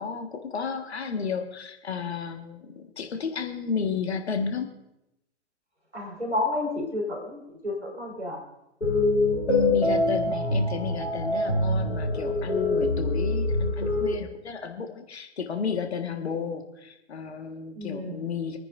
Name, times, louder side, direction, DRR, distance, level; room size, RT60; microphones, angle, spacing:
voice 1, 0.0-4.7 9.5-18.6, left 5 dB, 70° left, 6 dB, 1.6 m, -32 dB
voice 2, 5.9-8.4 10.2-10.5 17.7-18.2, left 2 dB, 85° right, -1 dB, 4.3 m, -31 dB
sound 1, 8.8-14.1, left 2 dB, 85° left, 2.6 m, -25 dB
26.0 x 9.7 x 2.6 m, 0.88 s
figure-of-eight pair, 110°, 34 cm